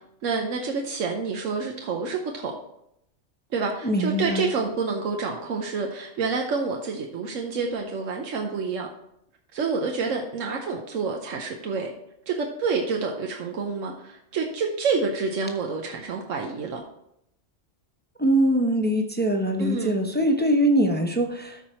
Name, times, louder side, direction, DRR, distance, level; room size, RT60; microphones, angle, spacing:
voice 1, 0.2-2.5 3.5-8.9 9.5-11.9 12.3-16.8 19.6-20.0, right 4 dB, 90° right, 2 dB, 1.2 m, -28 dB
voice 2, 3.8-4.5 18.2-21.6, right 1 dB, 10° left, 3 dB, 0.7 m, -22 dB
13.5 x 4.6 x 4.3 m, 0.79 s
omnidirectional pair, 1.3 m